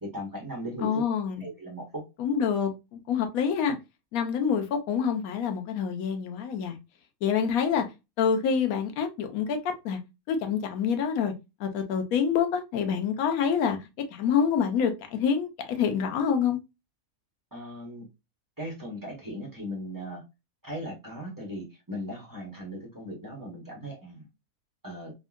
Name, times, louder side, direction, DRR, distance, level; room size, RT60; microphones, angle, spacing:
voice 1, 0.0-1.0 1.4-2.0 17.5-18.1 18.6-20.2 20.6-24.3 24.8-25.1, equal, 15° right, 0.9 m, -38 dB
voice 2, 0.8-1.5 2.2-3.8 4.1-6.8 7.2-7.9 8.2-10.0 10.3-11.3 11.6-13.8 14.1-16.6, left 7 dB, 90° left, 1.1 m, -26 dB
3.6 x 2.1 x 2.3 m
omnidirectional pair, 1.5 m